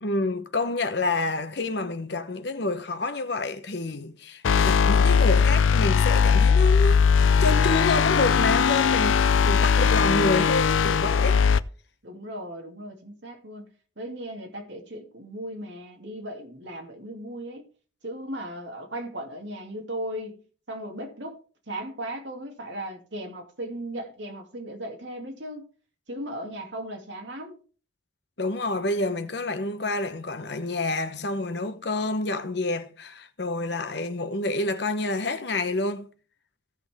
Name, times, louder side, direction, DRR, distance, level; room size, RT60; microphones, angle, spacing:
voice 1, 0.0-7.0 7.4-11.4 28.4-36.1, left 2 dB, 60° left, 1.0 m, -28 dB
sound 1, 4.4-11.6, left 6 dB, 85° left, 0.5 m, -20 dB
voice 2, 12.0-13.7 14.0-17.7 18.0-20.4 20.7-21.4 21.7-25.7 26.1-27.6, right 1 dB, 70° right, 2.4 m, -37 dB
16.0 x 6.0 x 3.5 m
head